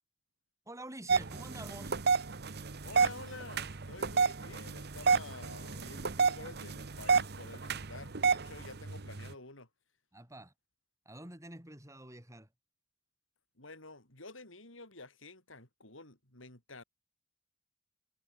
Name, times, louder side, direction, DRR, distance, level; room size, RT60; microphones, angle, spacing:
voice 1, 0.7-2.0 10.1-10.5 11.0-12.5, right 1 dB, 15° right, 7.9 m, -48 dB
sound 1, 1.1-9.3, right 5 dB, 55° right, 1.2 m, -31 dB
voice 2, 2.8-9.7 13.6-16.8, left 3 dB, 80° left, 7.1 m, -50 dB
head